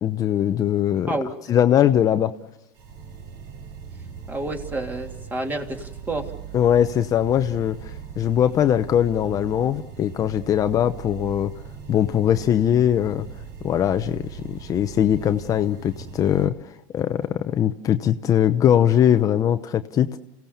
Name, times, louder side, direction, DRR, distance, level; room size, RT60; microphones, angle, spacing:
voice 1, 0.0-1.1 1.5-2.3 6.5-11.5 11.9-13.3 13.6-16.5 16.9-20.2, left 10 dB, 35° left, 9 dB, 0.8 m, -21 dB
voice 2, 1.1-1.6 4.3-6.3, right 2 dB, 20° right, 3 dB, 3.1 m, -29 dB
sound 1, 2.7-16.5, right 7 dB, 55° right, 3.8 m, -39 dB
28.0 x 17.0 x 7.1 m, 0.88 s
supercardioid pair, 115°, 10 cm